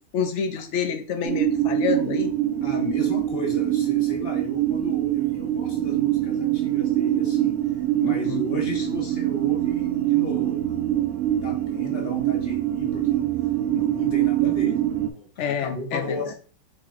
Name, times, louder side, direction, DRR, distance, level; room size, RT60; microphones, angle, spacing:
voice 1, 0.0-2.3 8.0-8.4 15.4-16.3, left 7 dB, 75° left, 7 dB, 0.6 m, -28 dB
sound 1, 1.2-15.1, right 13 dB, 70° right, 0.9 m, -24 dB
voice 2, 2.6-7.6 8.0-10.8 11.3-13.3 13.7-16.3, left 2 dB, 40° left, 1 dB, 1.3 m, -35 dB
5.0 x 4.1 x 2.4 m, 0.39 s
omnidirectional pair, 1.8 m